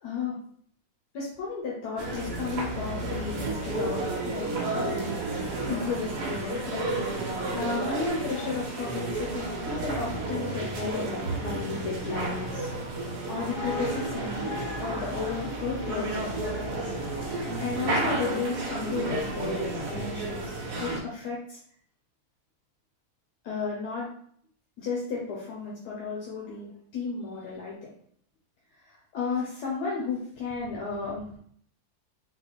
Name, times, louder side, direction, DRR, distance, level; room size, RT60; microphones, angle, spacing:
voice 1, 0.0-0.3 1.1-5.2 5.7-14.5 14.8-17.3 17.6-21.6 23.4-24.1 24.8-27.9 28.8-31.3, left 4 dB, 80° left, -4 dB, 1.4 m, -34 dB
sound 1, 2.0-21.0, right 2 dB, 80° right, 1.3 m, -32 dB
4.1 x 2.4 x 4.3 m, 0.62 s
omnidirectional pair, 1.7 m